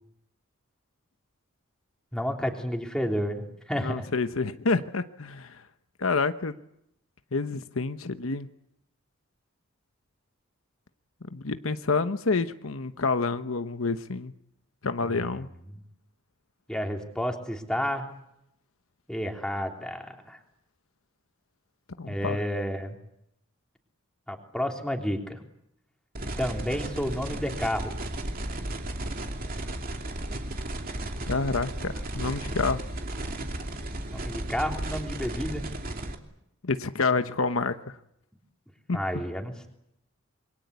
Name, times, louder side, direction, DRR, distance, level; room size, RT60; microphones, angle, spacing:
voice 1, 2.1-4.1 14.9-15.5 16.7-18.1 19.1-20.4 22.1-23.0 24.3-25.4 26.4-27.9 34.1-35.6 38.9-39.5, equal, 5° left, 2 dB, 3.3 m, -31 dB
voice 2, 3.8-5.6 6.0-6.6 7.3-8.5 11.3-14.3 14.8-15.5 22.0-22.4 31.3-32.9 36.6-37.9 38.9-39.0, left 4 dB, 75° left, 10 dB, 1.0 m, -28 dB
sound 1, 26.1-36.1, right 1 dB, 45° right, 2.8 m, -34 dB
27.0 x 23.0 x 8.2 m, 0.78 s
head